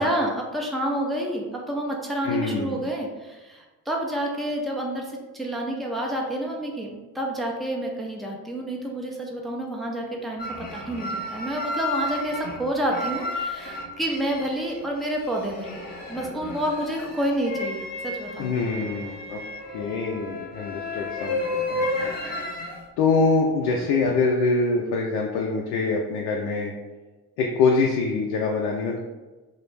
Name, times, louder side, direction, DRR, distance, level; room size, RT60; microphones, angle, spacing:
voice 1, 0.0-15.8 16.1-18.5, right 1 dB, ahead, -1 dB, 0.4 m, -29 dB
voice 2, 2.2-2.9 18.4-19.4 19.7-21.9 23.0-26.7 27.4-29.0, left 4 dB, 65° left, 0 dB, 0.5 m, -24 dB
sound 1, 10.4-22.8 23.6-24.1, left 2 dB, 20° left, 0.8 m, -32 dB
2.4 x 2.0 x 3.2 m, 1.2 s
figure-of-eight pair, 40°, 48 cm